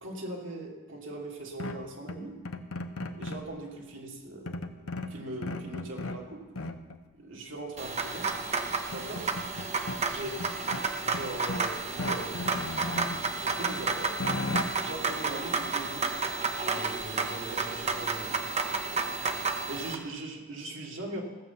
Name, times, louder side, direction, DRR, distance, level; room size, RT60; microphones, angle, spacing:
voice 1, 0.0-2.4 3.1-6.4 7.2-8.3 8.9-9.3 10.1-10.4 11.0-12.8 13.1-14.2 14.8-16.1 16.6-18.4 19.7-21.2, right 2 dB, 65° right, -1 dB, 2.6 m, -40 dB
sound 1, 1.6-3.5 4.5-6.2 6.5-7.0 8.3-8.4 8.7-10.0 10.4-11.7 12.0-13.2 13.7-14.6, left 2 dB, 85° left, 0.9 m, -36 dB
sound 2, 7.8-19.9, right 4 dB, 30° right, 0.9 m, -31 dB
16.0 x 7.9 x 7.1 m, 1.2 s
head